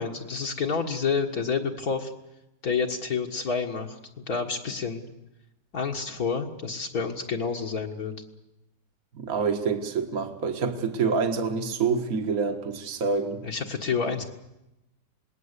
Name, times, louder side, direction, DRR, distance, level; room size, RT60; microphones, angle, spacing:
voice 1, 0.0-2.1 2.6-5.1 5.7-8.1 13.4-14.2, left 5 dB, 60° left, 1 dB, 2.1 m, -29 dB
voice 2, 9.2-13.4, right 5 dB, 60° right, 6 dB, 2.0 m, -27 dB
27.5 x 20.5 x 8.3 m, 0.91 s
omnidirectional pair, 1.8 m